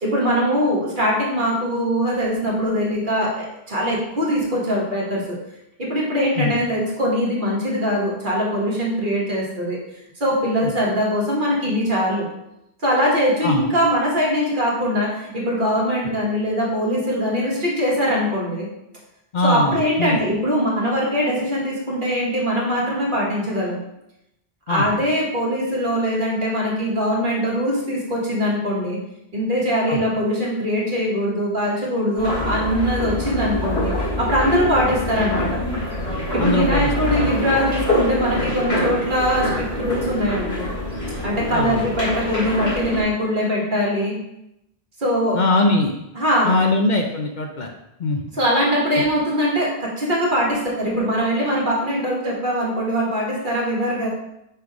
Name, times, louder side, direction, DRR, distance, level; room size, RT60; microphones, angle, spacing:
voice 1, 0.0-5.4 5.8-9.8 10.2-12.3 12.8-18.7 19.4-23.8 24.7-29.0 29.3-35.6 36.3-40.7 41.2-44.2 45.0-45.4 46.1-46.7 48.3-54.1, equal, 55° right, -4 dB, 1.7 m, -22 dB
voice 2, 19.3-20.2 24.7-24.9 29.9-30.0 36.4-36.9 37.2-37.3 41.5-41.8 45.3-45.9 46.4-47.7 48.0-48.2, left 2 dB, 55° left, 2 dB, 0.7 m, -21 dB
sound 1, 32.2-43.0, left 1 dB, 80° left, 2.4 m, -25 dB
5.5 x 3.8 x 4.7 m, 0.86 s
omnidirectional pair, 1.0 m